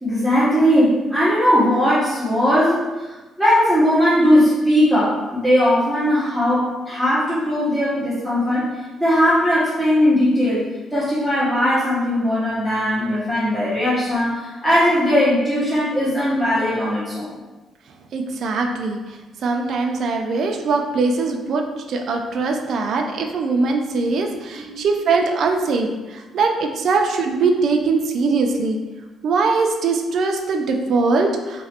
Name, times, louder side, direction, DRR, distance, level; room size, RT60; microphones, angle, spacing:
voice 1, 0.0-17.3 24.6-24.9, equal, ahead, -11 dB, 1.2 m, -19 dB
voice 2, 18.1-19.0 19.4-28.8 29.2-31.6, right 4 dB, 65° right, 3 dB, 0.5 m, -21 dB
3.0 x 2.9 x 4.3 m, 1.2 s
cardioid pair, 90°, 0 cm